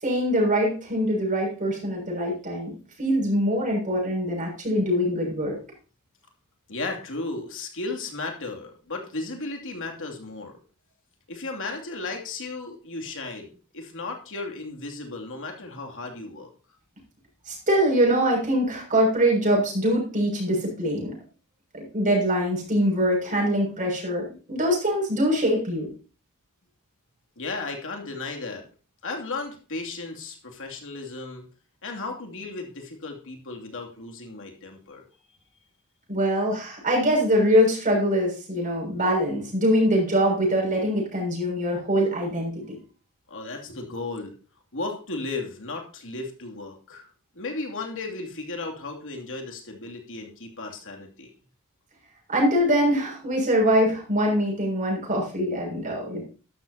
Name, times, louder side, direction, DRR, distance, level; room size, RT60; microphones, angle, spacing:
voice 1, 0.0-2.7 3.0-5.6 17.5-21.1 21.7-25.9 36.1-42.8 52.3-56.2, equal, 35° right, -1 dB, 6.8 m, -23 dB
voice 2, 6.7-10.6 11.3-16.5 27.4-28.6 29.0-31.5 31.8-35.0 43.3-44.4 44.7-47.1 47.3-51.3, left 3 dB, 60° left, 2 dB, 2.8 m, -35 dB
13.0 x 12.0 x 2.9 m, 0.37 s
head